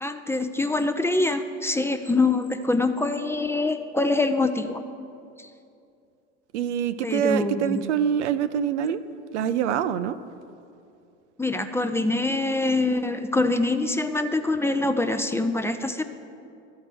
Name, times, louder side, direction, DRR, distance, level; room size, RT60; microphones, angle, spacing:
voice 1, 0.0-4.8 5.4-5.5 7.0-7.8 11.4-16.0, left 2 dB, 5° left, 7 dB, 0.4 m, -24 dB
voice 2, 6.5-9.0 9.3-10.1, right 9 dB, 80° right, 13 dB, 0.5 m, -25 dB
12.5 x 4.7 x 7.6 m, 2.5 s
hypercardioid pair, 80°, 35 cm